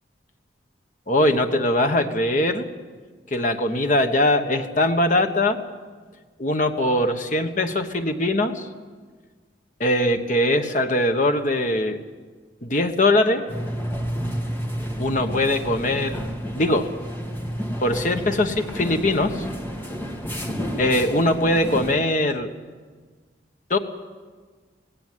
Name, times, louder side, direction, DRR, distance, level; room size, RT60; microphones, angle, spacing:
voice 1, 1.1-2.7 3.3-5.6 6.4-8.7 9.8-12.0 12.6-13.4 15.0-16.2 16.5-16.9 17.8-19.4 20.8-22.5 23.7-23.8, left 1 dB, 45° left, 6 dB, 1.3 m, -21 dB
sound 1, 13.5-22.0, equal, 10° left, 1.9 m, -30 dB
18.0 x 17.5 x 9.4 m, 1.5 s
head